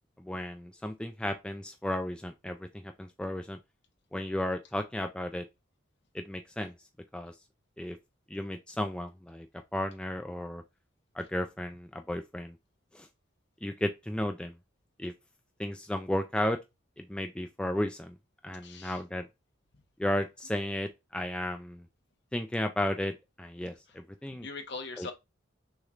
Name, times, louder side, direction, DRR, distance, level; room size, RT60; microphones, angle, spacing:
voice 1, 0.2-3.6 4.1-5.5 6.1-6.7 7.1-7.3 7.8-8.0 8.3-9.5 9.7-10.6 11.1-12.6 12.9-13.1 13.6-14.6 15.0-15.1 15.6-16.6 17.0-18.2 18.4-19.3 20.0-21.9 22.3-24.5 25.0-25.1, left 1 dB, 5° left, 0.3 m, -34 dB
voice 2, 18.6-19.0 23.9-24.0 24.3-25.1, left 4 dB, 60° left, 1.0 m, -41 dB
6.3 x 3.1 x 2.4 m
head